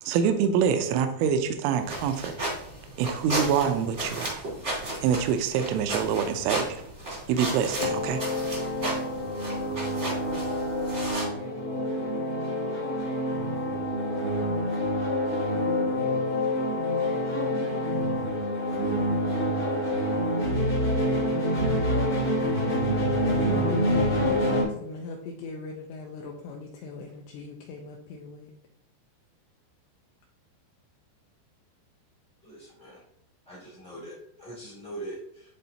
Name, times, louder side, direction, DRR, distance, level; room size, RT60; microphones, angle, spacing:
voice 1, 0.0-2.3 3.0-4.4 5.0-6.9 7.3-8.2, right 7 dB, 85° right, 7 dB, 3.0 m, -25 dB
sound 1, 1.8-11.2, right 1 dB, 45° right, 0.9 m, -34 dB
sound 2, 7.8-24.6, equal, 60° left, 0.9 m, -27 dB
voice 2, 23.1-28.5, left 4 dB, 85° left, 1 dB, 2.5 m, -39 dB
voice 3, 32.4-33.0 33.4-35.5, right 1 dB, 10° left, -8 dB, 0.3 m, -42 dB
11.0 x 3.8 x 2.8 m, 0.71 s
omnidirectional pair, 5.5 m